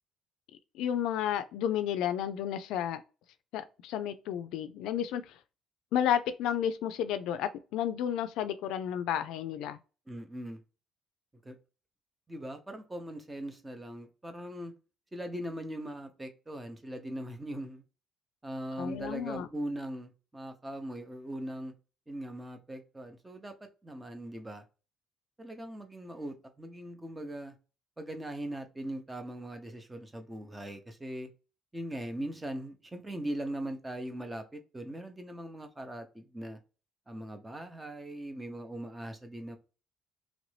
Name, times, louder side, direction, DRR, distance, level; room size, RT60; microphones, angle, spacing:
voice 1, 0.7-3.0 3.5-5.3 5.9-9.8 18.8-19.5, left 10 dB, 85° left, 0.3 m, -32 dB
voice 2, 10.1-10.6 11.4-11.6 12.3-14.7 15.1-17.8 18.4-21.7 22.1-23.5 23.8-24.6 25.4-27.6 28.0-31.3 31.7-36.6 37.1-39.6, right 1 dB, 15° right, 0.7 m, -40 dB
3.0 x 2.6 x 3.2 m
cardioid pair, 110°, 0 cm